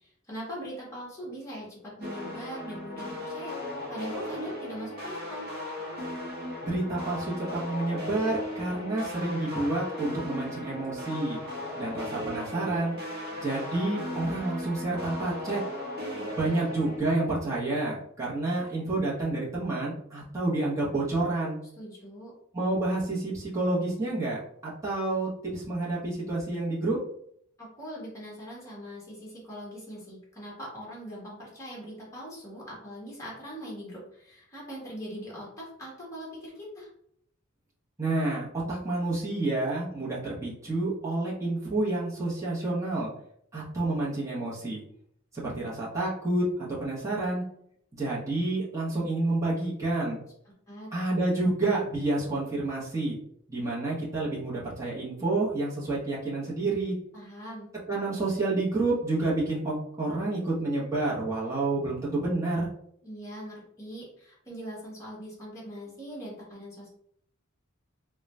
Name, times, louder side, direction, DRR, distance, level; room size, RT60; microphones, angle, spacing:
voice 1, 0.0-3.5 3.9-5.5 16.0-16.7 21.8-22.3 27.6-36.9 50.7-50.9 57.1-57.7 63.0-66.9, equal, 15° left, -5 dB, 1.4 m, -41 dB
sound 1, 2.0-17.0, left 1 dB, 50° right, 1.0 m, -37 dB
voice 2, 6.6-11.4 11.8-12.9 13.4-15.6 16.4-21.6 22.5-24.4 24.8-27.0 38.0-43.1 43.5-44.8 45.3-47.4 47.9-50.2 50.9-53.2 53.5-56.9 57.9-62.7, right 2 dB, 15° right, -7 dB, 0.9 m, -29 dB
3.8 x 2.3 x 3.2 m, 0.69 s
head